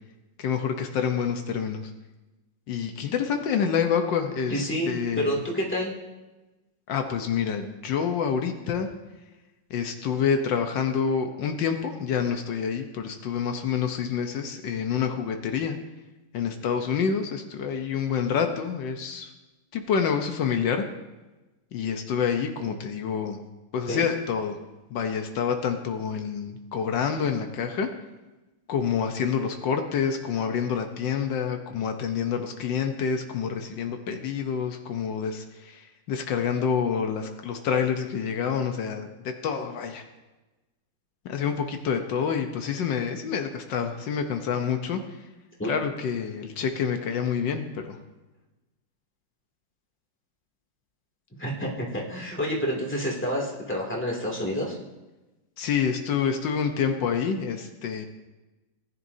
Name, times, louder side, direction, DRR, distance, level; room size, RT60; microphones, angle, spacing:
voice 1, 0.4-1.9 2.7-5.4 6.9-8.9 9.7-15.8 16.3-19.3 19.7-20.8 21.7-23.4 23.7-24.6 24.9-27.9 28.7-40.0 41.2-45.0 45.6-48.0 55.6-58.0, left 7 dB, 80° left, 5 dB, 1.5 m, -27 dB
voice 2, 4.5-5.9 23.9-24.0 45.6-45.7 51.4-54.8, equal, 5° left, -3 dB, 2.3 m, -28 dB
19.0 x 10.5 x 2.7 m, 1.1 s
omnidirectional pair, 2.0 m